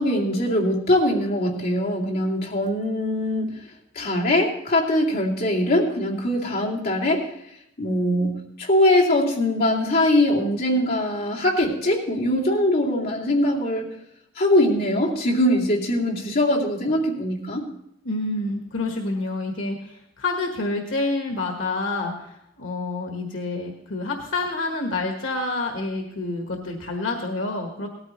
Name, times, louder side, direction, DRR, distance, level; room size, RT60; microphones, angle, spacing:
voice 1, 0.0-3.5 3.9-7.3 7.8-13.9 14.4-17.7, left 1 dB, 50° left, -4 dB, 2.4 m, -22 dB
voice 2, 18.0-27.9, left 2 dB, 80° left, 2 dB, 1.4 m, -28 dB
18.0 x 13.5 x 3.1 m, 0.78 s
head